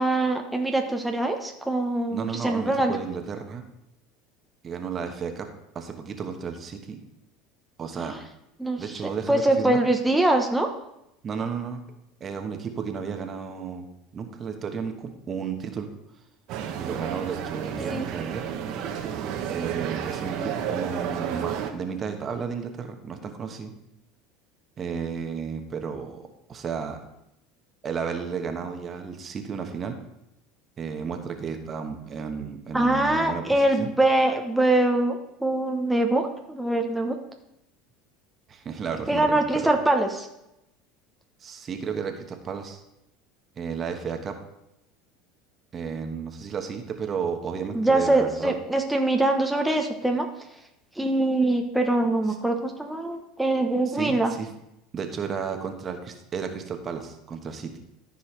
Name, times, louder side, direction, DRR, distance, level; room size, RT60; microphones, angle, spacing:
voice 1, 0.0-3.0 8.0-8.2 8.6-9.0 9.3-10.7 17.8-18.1 32.7-37.1 39.1-40.3 47.7-50.3 51.0-54.3, right 2 dB, 5° right, 2 dB, 1.1 m, -23 dB
voice 2, 2.1-3.6 4.6-5.5 5.7-7.0 7.8-8.1 8.8-9.8 11.2-11.8 12.2-13.9 14.1-15.9 16.8-18.5 19.5-23.7 24.8-27.0 27.8-30.0 30.8-33.9 38.5-39.7 41.4-42.8 43.6-44.4 45.7-48.5 53.9-54.5 54.9-57.7, right 6 dB, 35° right, 5 dB, 1.3 m, -33 dB
sound 1, 16.5-21.7, right 8 dB, 55° right, 1.1 m, -31 dB
14.0 x 5.7 x 3.3 m, 0.86 s
hypercardioid pair, 75°, 0 cm